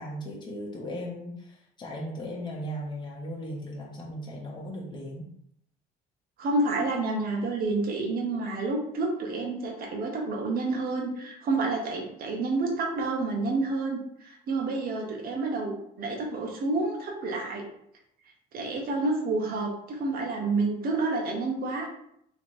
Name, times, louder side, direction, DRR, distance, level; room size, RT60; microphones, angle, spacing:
voice 1, 0.0-5.3, equal, 25° left, -3 dB, 1.1 m, -37 dB
voice 2, 6.4-17.7 18.5-21.9, right 3 dB, 60° right, 0 dB, 1.2 m, -29 dB
3.4 x 3.2 x 4.3 m, 0.72 s
cardioid pair, 110°, 17 cm